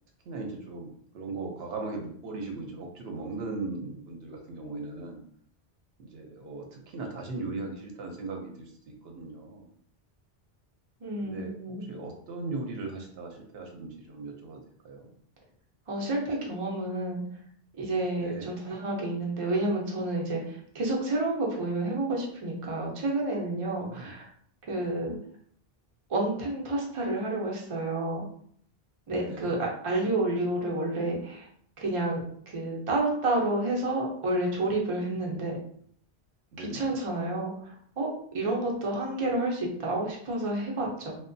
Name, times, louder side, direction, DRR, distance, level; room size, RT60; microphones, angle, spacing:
voice 1, 0.3-0.9 1.1-5.2 6.0-9.7 11.2-15.1 18.2-18.5 23.8-24.1 24.8-25.0 29.1-29.5 36.5-37.0, right 3 dB, 75° right, 1 dB, 0.8 m, -38 dB
voice 2, 11.0-11.8 15.9-17.2 17.8-24.3 24.7-25.1 26.1-28.2 29.1-31.5 31.8-35.6 36.6-37.5 38.0-38.1 38.3-41.1, right 2 dB, 40° right, -2 dB, 0.5 m, -30 dB
2.9 x 2.1 x 2.6 m, 0.62 s
omnidirectional pair, 1.1 m